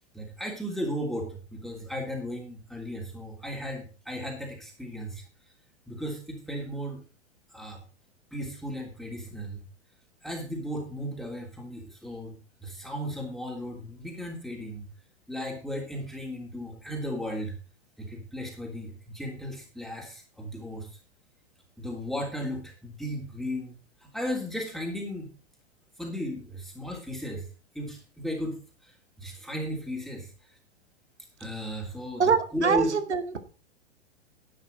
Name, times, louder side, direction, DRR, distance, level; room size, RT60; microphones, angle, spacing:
voice 1, 0.1-5.2 5.9-7.0 7.5-7.8 8.3-9.6 10.2-14.8 15.3-17.5 18.0-20.9 21.8-23.7 24.0-25.3 26.0-27.5 27.7-30.3 31.4-32.9, equal, ahead, -1 dB, 3.2 m, -35 dB
voice 2, 32.2-33.4, right 6 dB, 75° right, 10 dB, 2.0 m, -24 dB
11.0 x 10.5 x 4.1 m, 0.34 s
figure-of-eight pair, 105°, 35 cm